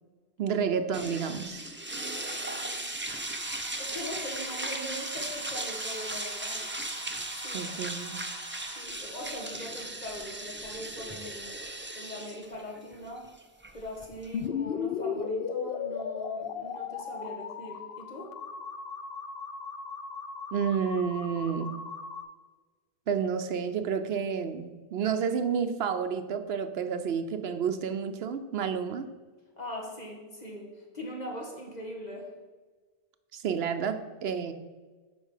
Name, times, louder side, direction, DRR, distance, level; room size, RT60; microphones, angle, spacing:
voice 1, 0.4-1.6 7.5-8.2 20.5-21.8 23.1-29.1 33.3-34.5, right 7 dB, 75° right, 9 dB, 0.9 m, -30 dB
sound 1, 0.9-14.5, right 2 dB, 15° right, 0.6 m, -37 dB
voice 2, 1.9-2.9 3.8-6.6 7.3-7.7 8.7-11.6 11.9-13.3 13.7-18.3 29.6-32.3, equal, 40° left, -1 dB, 1.8 m, -41 dB
sound 2, 3.0-8.8, right 1 dB, 5° left, 1.1 m, -46 dB
Power up sine wave, 14.3-22.2, left 6 dB, 65° left, 0.8 m, -36 dB
8.5 x 5.2 x 6.4 m, 1.4 s
omnidirectional pair, 1.1 m